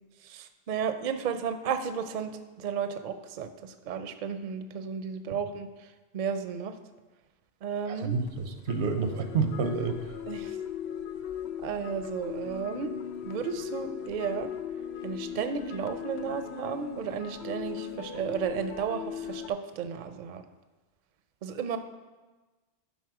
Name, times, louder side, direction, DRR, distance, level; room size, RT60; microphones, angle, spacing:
voice 1, 0.2-2.3 2.6-5.7 6.1-6.7 7.6-8.1 10.3-10.6 11.6-12.9 13.3-14.5 15.0-20.4 21.4-21.8, right 7 dB, 55° right, 9 dB, 0.6 m, -33 dB
voice 2, 7.8-10.2, right 4 dB, 85° right, 7 dB, 1.0 m, -29 dB
sound 1, 8.1-19.5, left 9 dB, 80° left, 0.9 m, -39 dB
11.0 x 4.1 x 4.7 m, 1.2 s
omnidirectional pair, 1.1 m